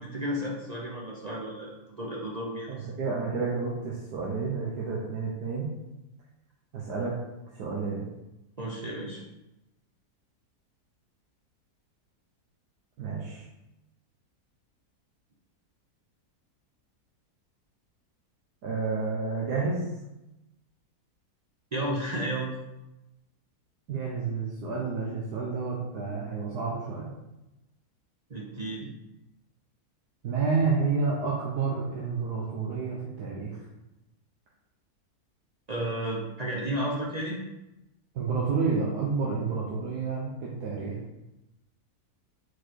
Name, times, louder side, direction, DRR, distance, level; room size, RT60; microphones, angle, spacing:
voice 1, 0.0-2.9 8.6-9.2 21.7-22.6 28.3-28.9 35.7-37.4, right 1 dB, 40° right, -3 dB, 0.6 m, -33 dB
voice 2, 2.7-5.7 6.7-7.2 7.5-8.1 13.0-13.4 18.6-19.8 23.9-27.1 30.2-33.6 38.1-41.0, right 4 dB, 80° right, -4 dB, 1.4 m, -30 dB
4.6 x 4.6 x 4.5 m, 0.97 s
omnidirectional pair, 1.7 m